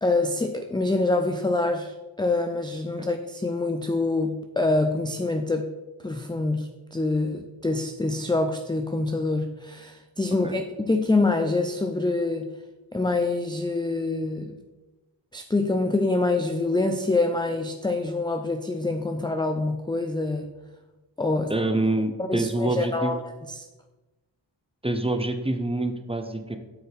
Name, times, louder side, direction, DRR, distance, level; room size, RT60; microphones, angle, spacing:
voice 1, 0.0-5.7 6.0-12.5 12.9-14.5 15.3-20.5 21.2-21.5 22.3-23.7, left 2 dB, 10° left, 6 dB, 0.4 m, -26 dB
voice 2, 21.5-23.1 24.8-26.6, right 2 dB, 10° right, 7 dB, 0.7 m, -26 dB
8.0 x 6.8 x 3.5 m, 1.1 s
wide cardioid pair, 70°, 46 cm